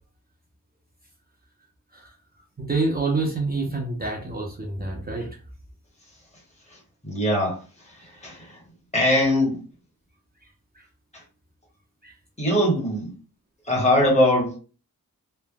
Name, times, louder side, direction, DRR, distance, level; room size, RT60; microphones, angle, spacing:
voice 1, 2.6-5.3 12.0-12.1, right 3 dB, 25° right, 0.7 m, -27 dB
voice 2, 7.0-7.6 8.2-8.6 8.9-9.6 12.4-13.1 13.7-14.6, left 1 dB, 20° left, 1.1 m, -21 dB
3.2 x 2.1 x 2.3 m
wide cardioid pair, 90°, 37 cm